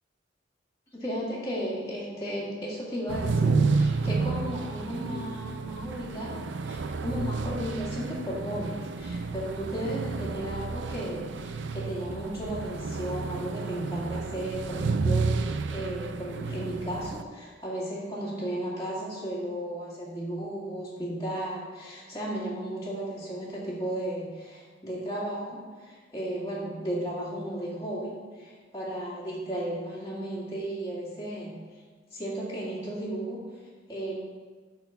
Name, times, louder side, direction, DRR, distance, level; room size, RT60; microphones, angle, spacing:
voice 1, 0.9-31.5 32.1-34.1, right 1 dB, 20° left, -8 dB, 2.0 m, -34 dB
sound 1, 3.1-17.2, right 4 dB, 65° right, 0.5 m, -30 dB
10.5 x 4.4 x 6.9 m, 1.5 s
head